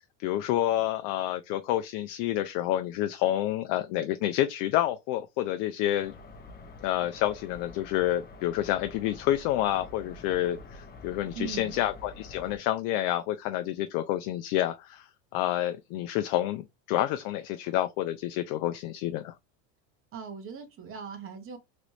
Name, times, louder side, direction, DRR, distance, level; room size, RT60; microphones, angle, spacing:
voice 1, 0.2-6.1 6.8-15.1 15.3-19.3, left 13 dB, 60° left, 0.5 m, -29 dB
sound 1, 6.0-12.6, left 3 dB, 25° left, 0.7 m, -47 dB
voice 2, 11.3-11.8 20.1-21.6, right 6 dB, 35° right, 1.0 m, -39 dB
3.0 x 2.5 x 3.1 m
supercardioid pair, 110°, 37 cm